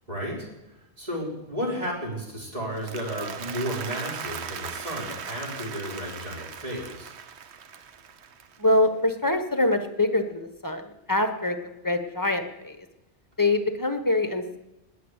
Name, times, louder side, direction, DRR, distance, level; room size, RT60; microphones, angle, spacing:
voice 1, 0.1-0.5 1.0-7.1, equal, 35° right, -3 dB, 4.4 m, -33 dB
Applause, 2.6-8.9, right 7 dB, 75° right, 1.1 m, -38 dB
voice 2, 8.6-11.6 11.8-12.8 13.4-14.6, left 2 dB, 20° left, 7 dB, 1.2 m, -24 dB
19.5 x 6.8 x 8.1 m, 0.95 s
omnidirectional pair, 1.1 m